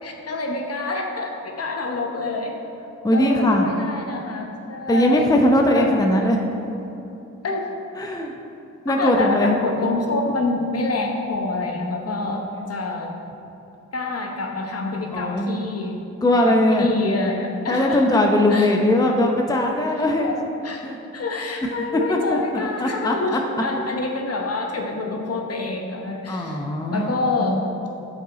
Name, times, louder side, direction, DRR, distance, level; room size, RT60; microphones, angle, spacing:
voice 1, 0.0-2.6 3.1-5.3 5.7-5.9 7.4-7.7 9.0-12.4 12.7-13.1 13.9-16.0 16.4-18.2 18.5-18.7 19.9-20.4 20.6-20.9 21.1-26.6 26.9-27.6, left 3 dB, 45° left, 2 dB, 1.0 m, -27 dB
voice 2, 3.0-3.7 4.9-6.4 8.0-8.3 8.8-9.6 12.3-12.4 15.1-15.5 16.2-16.9 17.7-20.3 20.8-21.0 21.9-23.4 26.3-27.1 27.4-27.6, left 1 dB, 10° left, 1 dB, 0.7 m, -20 dB
6.6 x 4.7 x 4.2 m, 2.9 s
supercardioid pair, 45°, 33 cm